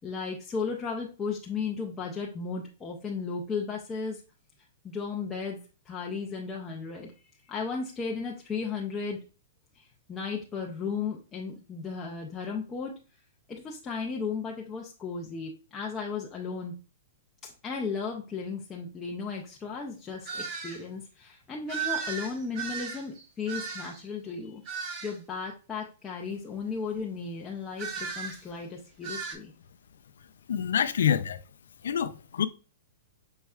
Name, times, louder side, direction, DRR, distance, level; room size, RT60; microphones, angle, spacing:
voice 1, 0.0-4.2 4.8-5.6 5.9-7.1 7.5-9.2 9.8-12.9 13.5-16.8 17.4-24.6 25.0-29.5, left 5 dB, 15° left, 0.5 m, -35 dB
sound 1, 20.2-20.8 21.7-24.1 24.7-25.2 27.8-28.4 29.0-29.3, right 6 dB, 35° right, 0.8 m, -35 dB
voice 2, 30.5-31.4 31.8-32.5, left 8 dB, 85° left, 0.4 m, -26 dB
5.4 x 3.2 x 2.3 m
hypercardioid pair, 155°, 0 cm